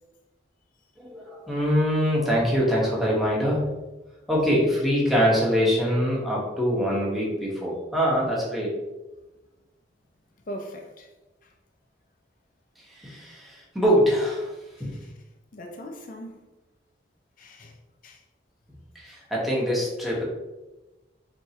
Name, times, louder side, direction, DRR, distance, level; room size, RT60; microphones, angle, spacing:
voice 1, 1.0-3.7 4.3-8.8 12.8-14.5 14.8-15.0 18.9-20.2, equal, ahead, 1.1 m, -24 dB
voice 2, 10.5-11.1 11.4-11.5 14.8-15.1 15.5-16.4 17.4-17.8 18.0-18.2, equal, 45° left, 0.5 m, -40 dB
4.6 x 3.3 x 2.8 m
head